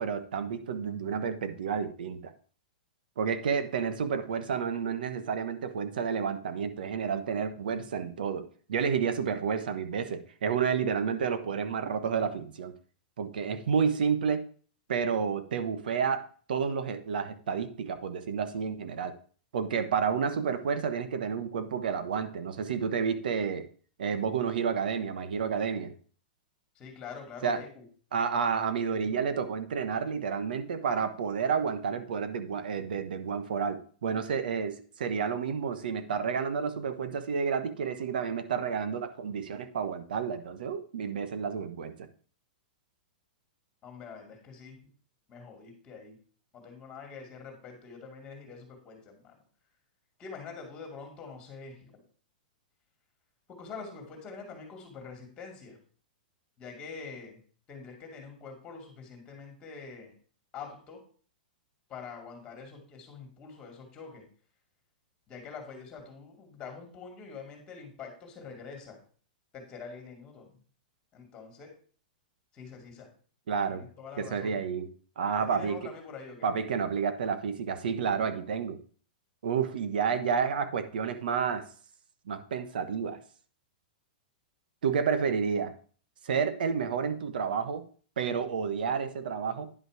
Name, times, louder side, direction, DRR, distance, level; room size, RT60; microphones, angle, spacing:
voice 1, 0.0-2.3 3.2-12.7 13.2-14.4 14.9-16.2 16.5-19.1 19.5-23.7 24.0-25.9 27.4-27.6 28.1-42.1 73.5-73.8 74.2-74.9 75.2-75.9 76.4-78.8 79.4-81.6 82.3-83.2 84.8-85.7 86.2-87.8 88.2-89.7, right 6 dB, 80° right, 10 dB, 1.2 m, -30 dB
voice 2, 26.8-27.8 43.8-44.8 45.3-46.2 46.5-49.4 50.2-52.0 53.5-55.8 56.6-57.4 57.7-60.1 60.5-61.0 61.9-64.3 65.3-69.0 69.5-70.6 71.1-71.7 72.5-73.1 73.7-74.6 75.4-76.5, left 5 dB, 15° left, 3 dB, 2.3 m, -45 dB
10.0 x 5.5 x 4.9 m, 0.43 s
supercardioid pair, 170°, 5 cm